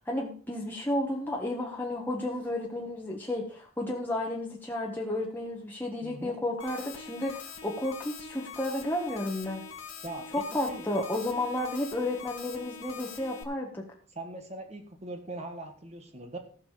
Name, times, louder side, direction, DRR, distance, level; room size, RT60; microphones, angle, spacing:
voice 1, 0.1-9.6 10.3-13.8, left 1 dB, 10° left, -2 dB, 1.5 m, -32 dB
voice 2, 6.0-6.4 10.0-10.9 14.1-16.4, right 2 dB, 30° right, 5 dB, 1.6 m, -41 dB
sound 1, 6.6-13.4, left 6 dB, 70° left, 2.0 m, -44 dB
14.5 x 6.6 x 4.9 m, 0.42 s
head